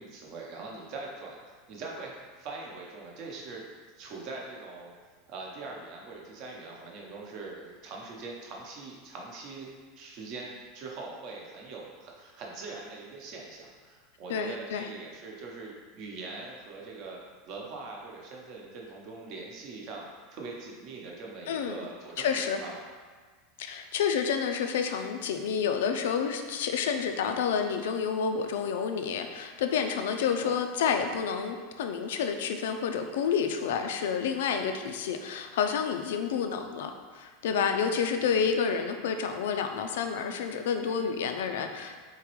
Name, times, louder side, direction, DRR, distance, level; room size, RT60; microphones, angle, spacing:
voice 1, 0.0-1.4 1.7-3.6 4.0-4.9 5.3-9.7 10.0-17.2 17.5-22.8 30.2-30.5 38.2-38.5, right 3 dB, 45° right, -1 dB, 0.8 m, -42 dB
voice 2, 14.3-14.9 21.5-21.9 22.2-22.6 23.6-41.9, left 6 dB, 90° left, 6 dB, 0.4 m, -29 dB
4.0 x 3.6 x 3.0 m, 1.5 s
supercardioid pair, 155°, 0 cm